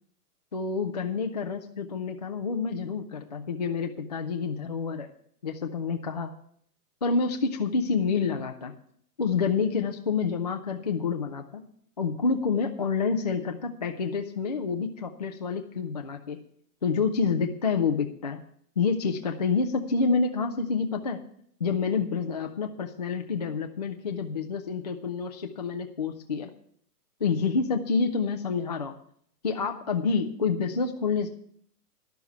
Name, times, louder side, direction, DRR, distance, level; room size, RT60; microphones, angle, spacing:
voice 1, 0.5-5.1 5.4-6.3 7.0-8.7 9.2-11.6 12.0-16.4 16.8-18.4 18.8-21.2 21.6-26.5 27.2-29.0 29.4-31.3, left 5 dB, 30° left, 4 dB, 0.4 m, -28 dB
11.5 x 7.0 x 8.1 m, 0.65 s
hypercardioid pair, 160°, 47 cm